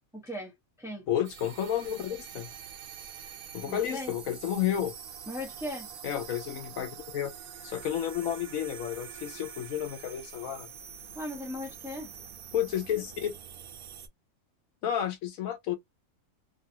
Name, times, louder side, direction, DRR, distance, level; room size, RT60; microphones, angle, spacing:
voice 1, 0.1-1.0 3.7-4.1 5.3-5.9 11.1-12.1, left 1 dB, ahead, 0.8 m, -38 dB
voice 2, 1.1-2.5 3.5-4.9 6.0-7.3 7.6-10.7 12.5-13.3 14.8-15.8, left 10 dB, 70° left, 1.0 m, -31 dB
sound 1, 1.2-14.1, right 8 dB, 80° right, 1.2 m, -45 dB
3.1 x 2.4 x 2.8 m
omnidirectional pair, 1.6 m